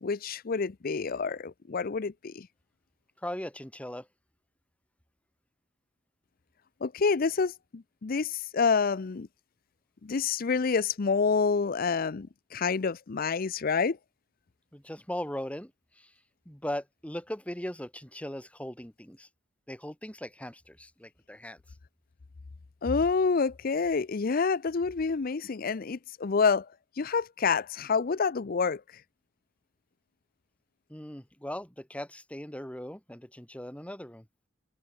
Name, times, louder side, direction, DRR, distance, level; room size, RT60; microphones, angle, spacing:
voice 1, 0.0-2.5 6.8-9.3 10.0-14.0 22.8-26.7 26.9-29.0, left 5 dB, 50° left, 0.5 m, -28 dB
voice 2, 3.2-4.1 14.7-15.7 16.0-16.1 16.5-19.3 19.7-21.6 30.9-34.2, left 1 dB, 5° left, 2.1 m, -39 dB
open air
head